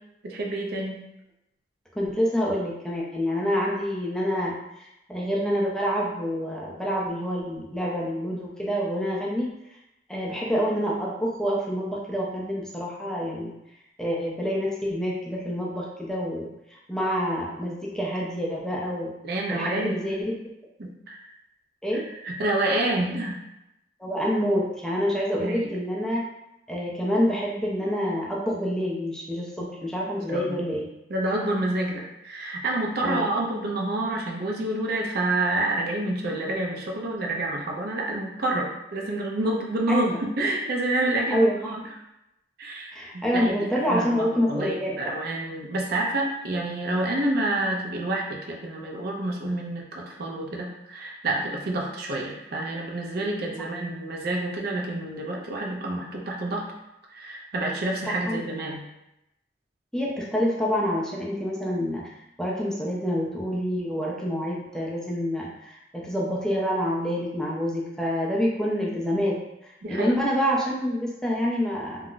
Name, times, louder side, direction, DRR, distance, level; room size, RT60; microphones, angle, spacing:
voice 1, 0.2-1.0 19.2-20.0 20.8-21.2 21.9-23.4 25.4-25.7 29.6-29.7 30.3-30.7 31.1-41.8 42.6-56.7 57.1-58.8 69.8-70.1, right 2 dB, 60° right, 0 dB, 0.5 m, -28 dB
voice 2, 1.9-9.5 10.1-13.5 14.0-19.1 19.5-20.3 21.8-22.1 24.0-26.3 26.7-30.9 33.0-33.3 39.9-40.2 41.3-41.5 42.9-45.1 58.1-58.4 59.9-62.1 62.4-72.1, equal, 5° left, -4 dB, 0.4 m, -27 dB
2.3 x 2.0 x 3.7 m, 0.89 s
head